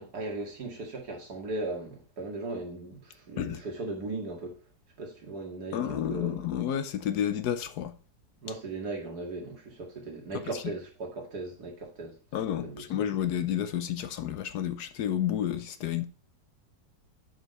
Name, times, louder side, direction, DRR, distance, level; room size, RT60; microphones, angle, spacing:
voice 1, 0.0-4.6 5.0-6.5 8.4-12.2 12.6-12.8, right 2 dB, 60° right, 2.6 m, -37 dB
voice 2, 5.7-7.9 10.5-10.6 12.3-16.1, left 10 dB, 70° left, 1.2 m, -30 dB
7.7 x 5.3 x 5.3 m
omnidirectional pair, 1.9 m